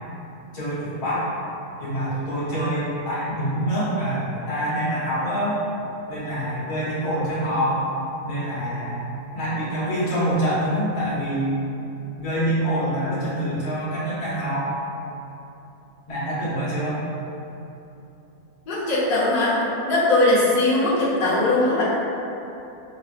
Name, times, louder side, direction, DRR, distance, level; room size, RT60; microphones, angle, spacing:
voice 1, 0.5-1.3 1.8-5.6 6.1-7.9 8.2-11.5 12.2-14.7 16.1-17.0, right 1 dB, 80° left, -10 dB, 1.8 m, -25 dB
voice 2, 18.7-19.6 19.8-21.8, left 2 dB, 40° left, -10 dB, 1.0 m, -20 dB
6.3 x 2.2 x 2.5 m, 2.9 s
omnidirectional pair, 1.7 m